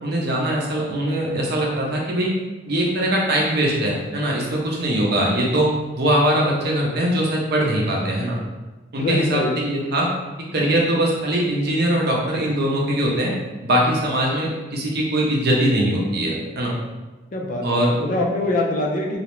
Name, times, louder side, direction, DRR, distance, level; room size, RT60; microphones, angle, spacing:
voice 1, 0.0-2.3 2.7-5.7 5.9-8.4 8.9-10.1 10.5-13.3 13.6-16.7 17.6-17.9, right 1 dB, 60° right, -2 dB, 0.6 m, -21 dB
voice 2, 9.0-9.5 17.3-19.2, left 2 dB, 45° left, -1 dB, 0.4 m, -24 dB
2.4 x 2.0 x 3.0 m, 1.2 s
head